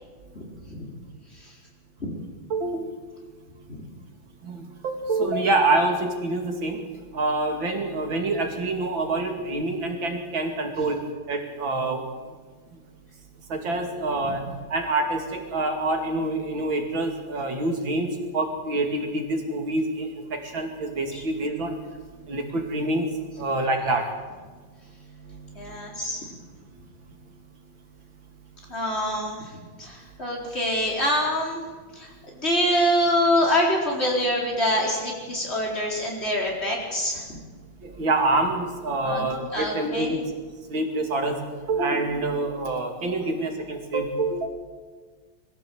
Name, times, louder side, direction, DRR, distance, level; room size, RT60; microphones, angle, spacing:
voice 1, 2.5-2.9 4.4-6.8 7.1-11.0 11.3-12.0 13.5-21.8 22.3-24.1 25.3-25.8 37.8-40.2 40.7-41.4 41.7-44.5, right 2 dB, 85° right, 3 dB, 3.2 m, -26 dB
voice 2, 25.5-26.2 28.7-29.4 29.8-31.6 32.0-37.4 39.0-39.2 39.5-40.2, equal, 30° left, -2 dB, 4.6 m, -25 dB
22.5 x 15.0 x 7.9 m, 1.4 s
omnidirectional pair, 2.1 m